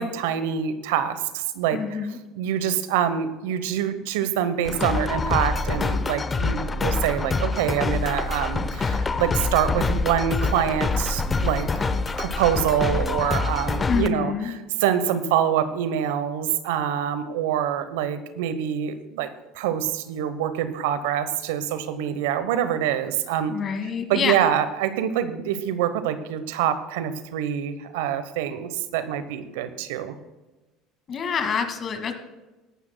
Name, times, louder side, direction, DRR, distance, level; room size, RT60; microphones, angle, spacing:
voice 1, 0.0-2.0 2.3-11.7 12.0-19.3 19.5-23.5 24.1-30.1, right 9 dB, 80° right, 11 dB, 0.9 m, -25 dB
voice 2, 1.7-2.2 13.8-14.5 23.5-24.4 31.1-32.1, left 6 dB, 45° left, 6 dB, 2.0 m, -27 dB
sound 1, 4.7-14.1, left 3 dB, 25° left, 0.9 m, -25 dB
17.5 x 12.0 x 2.2 m, 1.1 s
hypercardioid pair, 80°, 0 cm